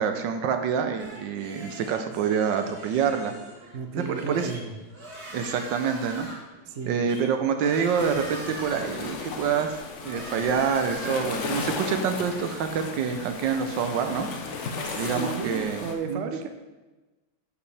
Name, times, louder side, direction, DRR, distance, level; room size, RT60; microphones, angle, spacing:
voice 1, 0.0-3.3 4.1-4.5 5.3-6.3 6.8-14.3 14.6-16.2, right 6 dB, 70° right, 7 dB, 1.3 m, -27 dB
sound 1, 1.0-14.9, right 1 dB, 50° right, 2.2 m, -44 dB
voice 2, 3.7-4.7 6.7-7.1 14.8-16.5, right 5 dB, 85° right, 6 dB, 0.6 m, -34 dB
sound 2, 8.0-15.9, left 4 dB, 60° left, 0.7 m, -35 dB
12.0 x 4.9 x 3.3 m, 1.2 s
omnidirectional pair, 2.3 m